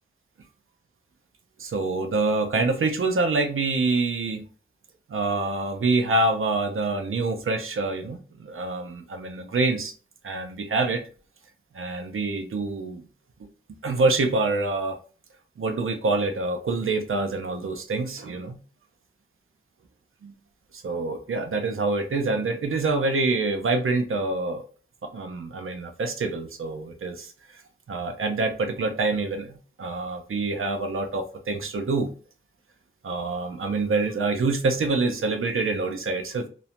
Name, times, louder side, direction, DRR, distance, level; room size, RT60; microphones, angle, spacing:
voice 1, 1.6-4.4 5.1-9.9 10.2-11.0 11.7-13.0 13.7-15.0 15.6-18.6 20.2-20.3 20.7-24.6 25.0-27.3 27.9-32.1 33.0-36.5, right 3 dB, 85° right, 6 dB, 0.5 m, -26 dB
2.5 x 2.1 x 2.8 m, 0.38 s
wide cardioid pair, 75°, 21 cm